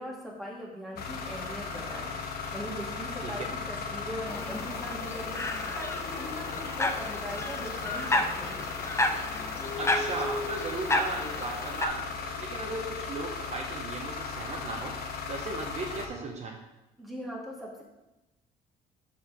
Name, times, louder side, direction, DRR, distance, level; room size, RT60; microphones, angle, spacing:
voice 1, 0.0-5.4 5.7-8.6 17.0-17.8, equal, ahead, -3 dB, 1.9 m, -40 dB
sound 1, 1.0-16.1, left 5 dB, 65° left, 1.0 m, -37 dB
sound 2, 4.3-11.9, left 2 dB, 15° left, 0.6 m, -32 dB
voice 2, 9.8-14.9 15.3-16.6, right 2 dB, 40° right, 1 dB, 0.9 m, -36 dB
5.9 x 4.2 x 6.1 m, 0.99 s
cardioid pair, 110°, 17 cm